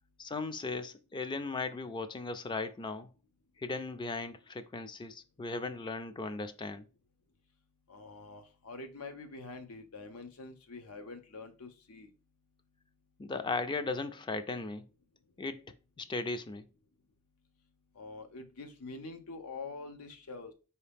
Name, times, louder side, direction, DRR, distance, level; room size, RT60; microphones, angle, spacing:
voice 1, 0.2-3.1 3.6-6.8 13.2-14.9 15.4-15.6 16.0-16.6, left 3 dB, 20° left, 0.3 m, -37 dB
voice 2, 7.9-12.1 17.9-20.5, left 3 dB, 90° left, 0.7 m, -45 dB
4.7 x 2.8 x 3.4 m
head